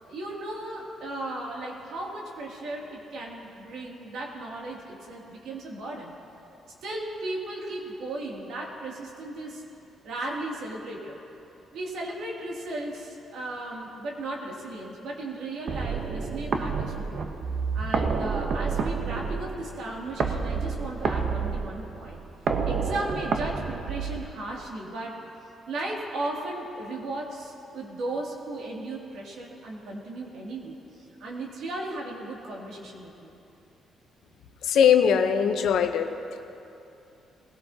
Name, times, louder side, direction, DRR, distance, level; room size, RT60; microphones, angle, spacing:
voice 1, 0.0-6.1 6.8-9.6 10.0-11.2 11.7-17.3 17.7-22.2 22.6-25.2 25.7-33.3, right 2 dB, 75° right, -2 dB, 2.6 m, -36 dB
sound 1, 15.7-24.6, right 5 dB, 60° right, 0.9 m, -29 dB
voice 2, 34.6-36.4, left 7 dB, 75° left, 7 dB, 0.8 m, -21 dB
20.0 x 16.5 x 2.9 m, 2.9 s
cardioid pair, 90°, 0 cm